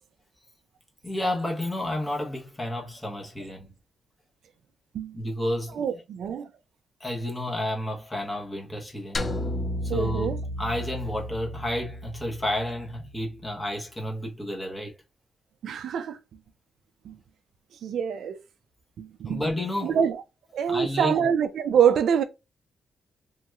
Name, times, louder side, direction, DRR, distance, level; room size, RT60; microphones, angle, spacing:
voice 1, 1.0-3.7 5.1-6.0 7.0-9.4 9.8-15.0 19.2-20.0 20.6-21.3, left 1 dB, 10° left, 0.9 m, -31 dB
voice 2, 5.8-6.5 9.9-10.4 15.6-16.2 17.1-17.2 17.8-18.4 19.0-19.4 19.8-20.2 20.5-22.2, right 8 dB, 75° right, 0.4 m, -25 dB
sound 1, 9.1-13.5, left 1 dB, 30° left, 0.4 m, -33 dB
3.1 x 2.9 x 2.3 m
cardioid pair, 135°, 0 cm